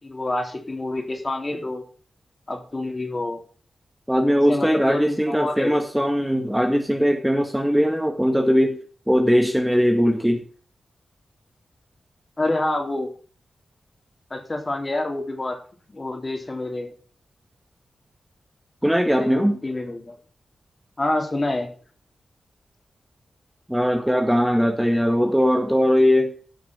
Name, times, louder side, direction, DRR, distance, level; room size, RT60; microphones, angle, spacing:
voice 1, 0.0-1.8 2.5-3.4 4.5-5.8 12.4-13.1 14.3-15.6 15.9-16.9 19.2-20.2 21.0-21.7, left 2 dB, 35° left, 3 dB, 3.6 m, -27 dB
voice 2, 4.1-8.8 9.1-10.5 18.8-19.6 23.7-26.3, equal, 5° right, 5 dB, 1.7 m, -20 dB
11.5 x 6.1 x 6.3 m, 0.42 s
cardioid pair, 45°, 0 cm